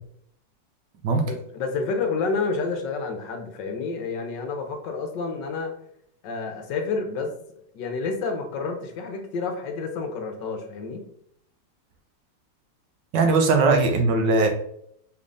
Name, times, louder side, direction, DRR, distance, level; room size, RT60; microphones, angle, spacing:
voice 1, 1.3-5.7 6.2-7.3 7.7-11.0, left 4 dB, 75° left, 4 dB, 1.4 m, -29 dB
voice 2, 13.1-14.5, right 3 dB, 75° right, 5 dB, 1.3 m, -19 dB
5.2 x 3.4 x 2.6 m, 0.70 s
omnidirectional pair, 2.0 m